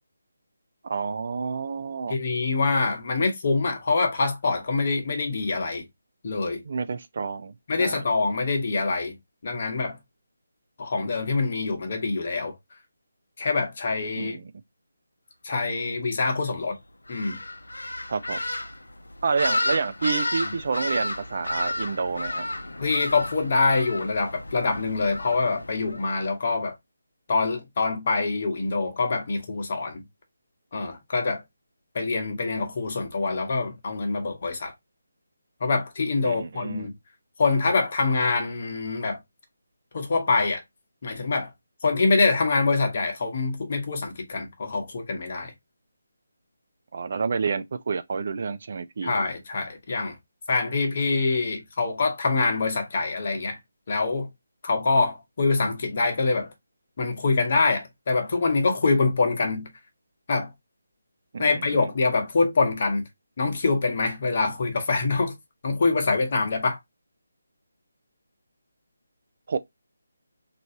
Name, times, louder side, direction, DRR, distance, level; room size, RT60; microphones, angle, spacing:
voice 1, 0.8-2.2 6.6-7.5 7.8-8.0 14.2-14.5 18.1-18.4 19.2-22.4 36.2-36.9 46.9-49.1 61.3-61.9 69.5-69.6, right 5 dB, 50° right, 0.3 m, -29 dB
voice 2, 2.1-5.8 6.2-6.6 7.7-9.2 9.4-10.0 10.8-12.5 13.4-14.4 15.4-16.8 17.1-17.4 22.8-26.7 27.3-30.0 30.7-31.4 31.9-34.7 35.6-36.9 37.4-39.2 39.9-40.6 41.0-41.5 41.8-45.5 49.0-50.2 50.5-53.6 53.9-54.3 54.6-56.5 57.0-59.7 60.3-60.5 61.4-63.1 63.4-65.3 65.6-66.8, left 3 dB, 45° left, 1.0 m, -25 dB
sound 1, 17.1-26.2, left 1 dB, 80° left, 0.5 m, -32 dB
3.1 x 2.6 x 2.6 m
figure-of-eight pair, 155°, 0 cm